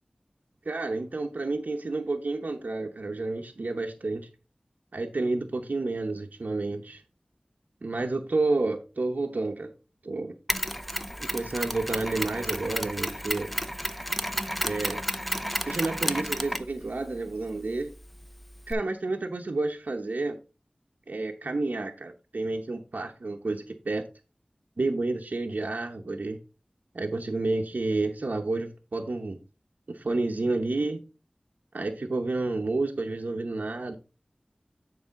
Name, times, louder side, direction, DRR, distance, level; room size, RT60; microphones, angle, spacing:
voice 1, 0.6-4.3 4.9-7.0 7.8-9.7 10.0-10.3 11.2-13.5 14.6-15.0 15.6-17.9 18.7-20.4 21.1-24.1 24.8-26.4 26.9-29.4 29.9-31.0 31.7-33.9, right 3 dB, 80° right, 3 dB, 0.9 m, -30 dB
Mechanisms, 10.5-18.7, equal, 5° left, 0.7 m, -32 dB
9.7 x 4.9 x 3.7 m, 0.31 s
wide cardioid pair, 50°, 3 cm